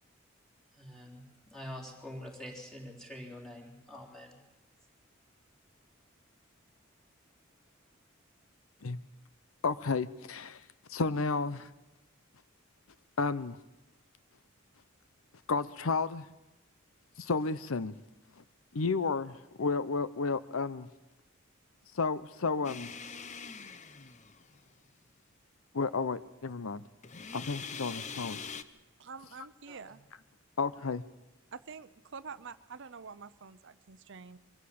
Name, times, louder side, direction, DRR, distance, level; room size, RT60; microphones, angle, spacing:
voice 1, 0.7-4.4 27.9-28.3 29.7-30.0, left 1 dB, ahead, 3.7 m, -46 dB
voice 2, 9.6-10.6 10.9-11.7 13.2-13.6 15.5-16.3 17.2-17.9 18.7-20.9 21.9-22.9 25.7-26.8 27.3-28.4 30.6-31.0, left 4 dB, 80° left, 0.7 m, -32 dB
sound 1, 22.6-24.7 27.0-28.6, left 6 dB, 35° left, 0.8 m, -43 dB
voice 3, 29.0-30.0 31.5-34.4, right 5 dB, 60° right, 0.7 m, -47 dB
23.5 x 14.5 x 8.6 m
head